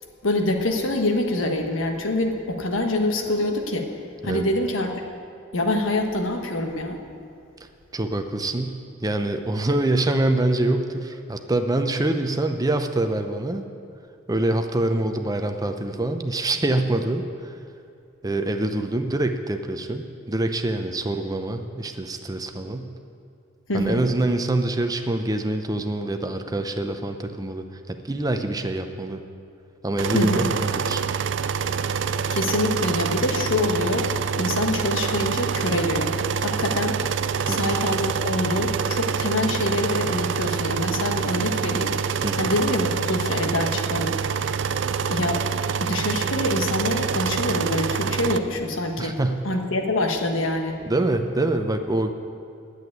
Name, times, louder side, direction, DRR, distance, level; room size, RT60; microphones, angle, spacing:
voice 1, 0.2-3.9 4.2-5.0 5.5-7.0 23.7-24.0 30.1-30.5 32.3-36.1 36.4-37.0 37.4-41.9 42.4-44.2 45.1-45.4 45.8-49.2 49.4-50.8, left 1 dB, 90° left, 3 dB, 1.4 m, -25 dB
voice 2, 7.9-13.7 14.3-17.5 18.2-22.9 23.7-29.2 29.8-31.1 37.5-37.7 42.2-42.5 49.0-49.4 50.8-52.1, right 2 dB, 20° right, 6 dB, 0.6 m, -25 dB
sound 1, 30.0-48.4, right 6 dB, 65° right, 0.5 m, -26 dB
9.6 x 8.1 x 9.4 m, 2.5 s
head